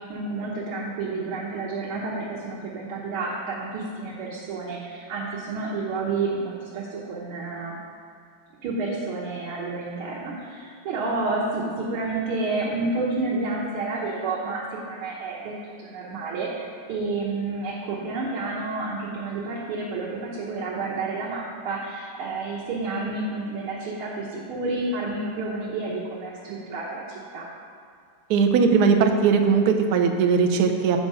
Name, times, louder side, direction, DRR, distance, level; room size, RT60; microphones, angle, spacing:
voice 1, 0.1-7.7 8.6-27.5, right 3 dB, 90° right, -5 dB, 1.8 m, -30 dB
voice 2, 28.3-31.0, right 5 dB, 70° right, 4 dB, 1.0 m, -19 dB
7.9 x 4.7 x 5.4 m, 2.2 s
omnidirectional pair, 2.3 m